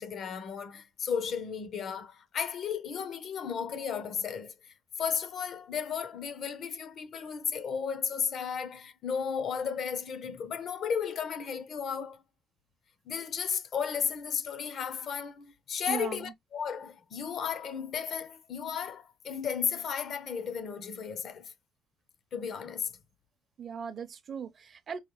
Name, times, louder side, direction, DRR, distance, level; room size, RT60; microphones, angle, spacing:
voice 1, 0.0-12.2 13.1-21.5 22.3-22.9, left 7 dB, 50° left, 0.6 m, -34 dB
voice 2, 15.9-16.3 23.6-25.0, right 7 dB, 40° right, 0.5 m, -38 dB
4.8 x 2.4 x 2.9 m
cardioid pair, 130°, 0 cm